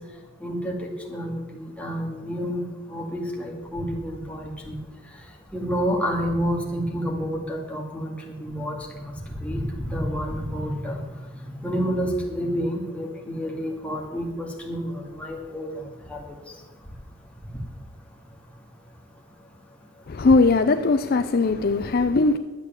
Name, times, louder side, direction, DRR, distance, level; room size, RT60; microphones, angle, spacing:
voice 1, 0.4-4.7 5.5-8.1 8.4-8.7 9.4-11.0 11.6-15.7 16.1-16.2, equal, 5° left, -1 dB, 2.2 m, -29 dB
voice 2, 20.1-22.4, left 3 dB, 50° left, 9 dB, 0.5 m, -19 dB
11.0 x 8.2 x 7.6 m, 1.2 s
head